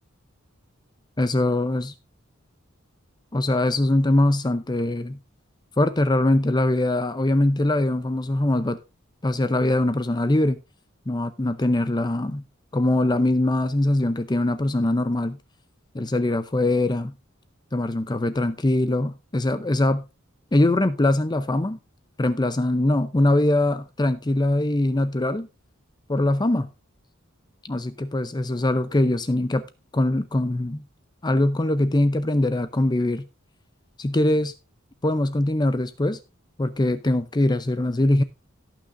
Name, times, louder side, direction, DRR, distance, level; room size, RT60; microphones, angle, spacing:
voice 1, 1.2-1.9 3.3-5.2 5.8-8.8 9.2-10.6 11.1-12.4 12.7-15.4 15.9-17.1 17.7-20.0 20.5-21.8 22.2-25.5 26.1-26.7 27.6-29.7 29.9-30.8 31.2-33.3 34.0-34.5 35.0-36.2 36.6-38.2, left 1 dB, 20° left, 0.6 m, -22 dB
18.0 x 6.1 x 2.5 m
head